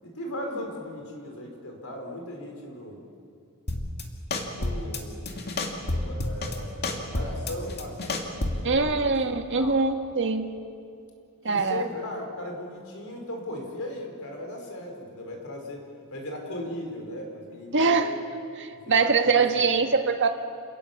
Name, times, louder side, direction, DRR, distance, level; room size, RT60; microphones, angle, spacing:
voice 1, 0.0-3.0 4.5-9.8 11.4-15.8 16.1-18.2 19.0-19.7, left 1 dB, 70° left, 2 dB, 4.8 m, -38 dB
sound 1, 3.7-4.0 4.3-5.0 5.3-6.6 6.8-8.7, left 2 dB, 50° left, 2.3 m, -29 dB
voice 2, 8.6-10.5 11.4-11.8 17.7-18.1 18.6-20.3, right 4 dB, 55° right, 5 dB, 1.7 m, -23 dB
28.5 x 18.0 x 7.2 m, 2.5 s
head